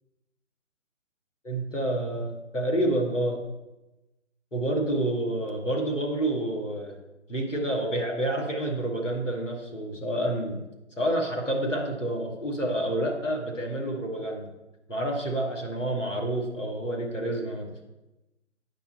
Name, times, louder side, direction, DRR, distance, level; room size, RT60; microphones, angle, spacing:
voice 1, 1.4-3.4 4.5-7.0 7.3-10.6 11.0-14.5 14.9-17.8, right 1 dB, 90° left, 0 dB, 2.2 m, -28 dB
9.1 x 7.4 x 4.2 m, 1.0 s
figure-of-eight pair, 135°, 36 cm